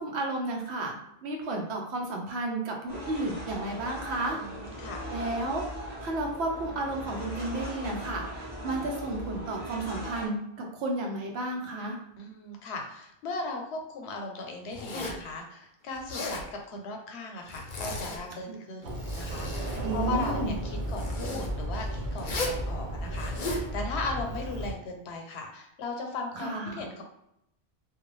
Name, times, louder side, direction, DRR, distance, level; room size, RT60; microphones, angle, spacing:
voice 1, 0.0-4.4 5.1-5.7 6.0-12.0 18.5-18.6 19.8-20.5 26.3-26.8, right 2 dB, 80° right, 1 dB, 0.9 m, -32 dB
sound 1, 2.9-10.3, equal, 10° right, 0.8 m, -39 dB
voice 2, 4.3-5.3 8.7-8.9 12.2-27.0, left 3 dB, 85° left, 2 dB, 0.9 m, -38 dB
Zipper (clothing), 14.7-15.3 15.9-16.5 17.5-18.2 18.8-19.8 20.9-21.5 22.2-22.6 23.1-23.7, left 2 dB, 55° left, 0.7 m, -35 dB
Sliding door, 18.8-24.7, right 1 dB, 55° right, 0.7 m, -34 dB
2.4 x 2.3 x 3.1 m, 0.81 s
omnidirectional pair, 1.1 m